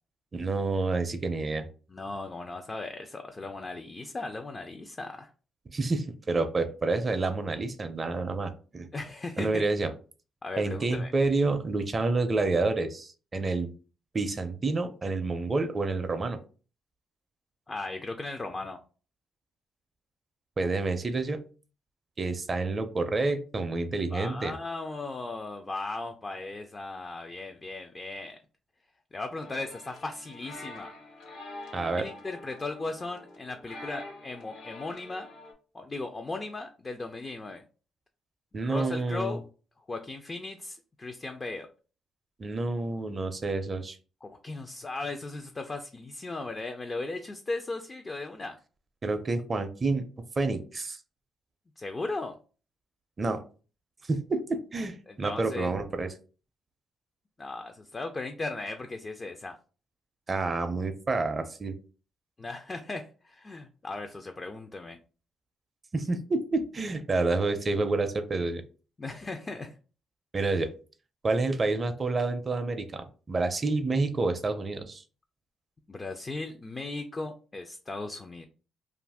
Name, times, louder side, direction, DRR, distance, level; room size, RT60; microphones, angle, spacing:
voice 1, 0.3-1.7 5.7-8.9 9.4-9.9 10.6-13.7 14.1-16.4 20.6-21.4 22.2-24.6 31.7-32.0 38.5-39.4 42.4-44.0 49.0-50.1 50.4-51.0 53.2-53.4 54.1-56.1 60.3-61.8 65.9-68.6 70.3-70.7 71.2-75.0, right 3 dB, 35° right, 9 dB, 0.5 m, -28 dB
voice 2, 1.9-5.3 8.9-9.6 10.4-11.1 17.7-18.8 24.1-28.4 29.1-30.9 31.9-35.3 35.7-37.6 38.6-39.4 39.9-41.7 44.2-48.6 51.8-52.4 55.1-55.7 57.4-59.6 62.4-65.0 69.0-69.8 75.9-78.4, left 3 dB, 30° left, 5 dB, 0.3 m, -37 dB
sound 1, 29.3-35.5, left 2 dB, 85° left, 0.9 m, -46 dB
2.5 x 2.4 x 3.4 m, 0.37 s
cardioid pair, 90°, 0 cm